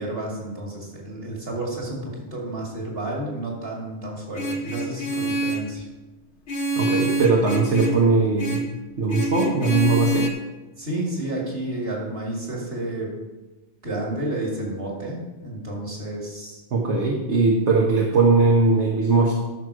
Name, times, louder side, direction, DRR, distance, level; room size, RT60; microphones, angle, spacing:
voice 1, 0.0-5.8 10.8-13.1 13.8-16.6, right 1 dB, 55° right, -2 dB, 2.8 m, -31 dB
Vehicle horn car horn honking, 4.3-5.7 6.5-8.0 8.4-8.7 9.1-10.3, right 2 dB, 70° left, 1.4 m, -26 dB
voice 2, 6.8-8.6 9.0-10.3 16.7-19.3, right 3 dB, 75° right, -1 dB, 1.4 m, -19 dB
12.5 x 6.3 x 4.9 m, 1.1 s
omnidirectional pair, 1.2 m